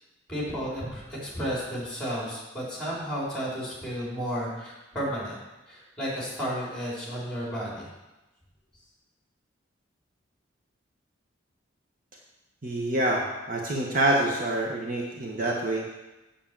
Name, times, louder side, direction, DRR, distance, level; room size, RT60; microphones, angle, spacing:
voice 1, 0.3-5.4 5.7-7.9, equal, 5° left, -5 dB, 3.9 m, -32 dB
voice 2, 12.6-15.9, right 1 dB, 45° right, -2 dB, 1.2 m, -26 dB
7.5 x 7.3 x 7.4 m, 1.0 s
head